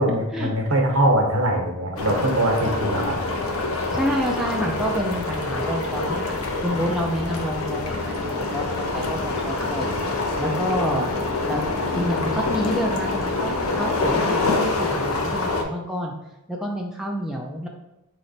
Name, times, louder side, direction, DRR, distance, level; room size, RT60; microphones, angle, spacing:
voice 1, 0.0-3.2, right 1 dB, 70° right, 1 dB, 1.0 m, -22 dB
sound 1, 2.0-15.6, left 2 dB, 70° left, 0.7 m, -26 dB
voice 2, 3.7-6.3 6.6-11.1 11.5-11.6 11.9-16.1 16.5-17.7, equal, ahead, -1 dB, 0.4 m, -28 dB
3.7 x 3.3 x 4.0 m, 0.95 s
head